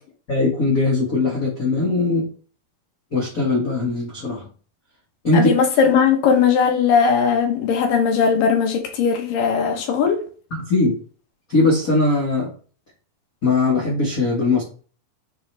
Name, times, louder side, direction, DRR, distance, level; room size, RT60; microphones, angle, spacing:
voice 1, 0.3-2.2 3.1-4.5 5.2-5.5 10.5-11.0 11.5-12.5 13.4-14.6, left 3 dB, 90° left, 0.7 m, -20 dB
voice 2, 5.3-10.2, left 6 dB, 70° left, 2.6 m, -18 dB
9.4 x 4.0 x 3.3 m
omnidirectional pair, 4.4 m